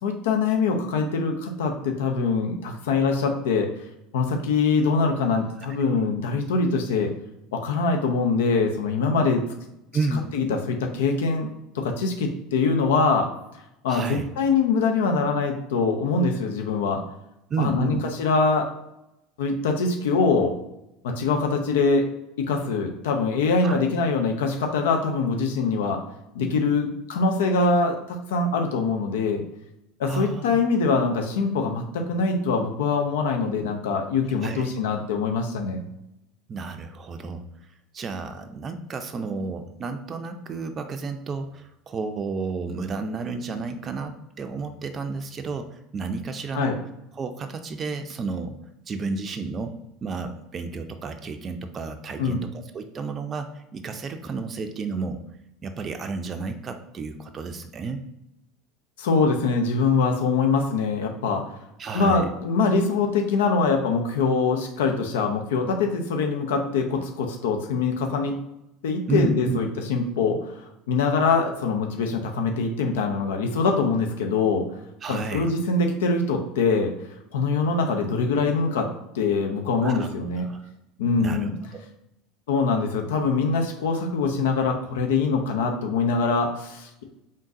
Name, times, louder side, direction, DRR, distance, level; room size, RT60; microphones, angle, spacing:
voice 1, 0.0-3.7 4.1-7.1 7.5-9.4 10.3-11.5 11.7-13.3 13.8-17.0 17.6-18.7 19.4-20.5 21.0-22.0 22.4-26.0 26.3-29.4 30.0-35.8 46.5-46.8 52.2-52.4 59.0-61.5 61.9-68.3 68.8-74.7 75.1-76.9 77.3-78.9 79.1-80.5 81.0-81.5 82.5-87.0, left 4 dB, 75° left, 3 dB, 0.5 m, -23 dB
voice 2, 9.9-10.3 13.9-14.3 17.5-18.0 23.6-23.9 30.0-30.4 34.4-34.7 36.5-37.4 37.9-46.8 47.1-48.6 48.9-49.7 50.0-55.2 55.6-58.0 61.8-62.3 69.1-69.6 75.0-75.5 79.8-80.1 80.4-80.7 81.2-81.8, right 4 dB, 35° right, 7 dB, 0.4 m, -31 dB
3.7 x 3.7 x 2.6 m, 0.86 s
hypercardioid pair, 80°, 0 cm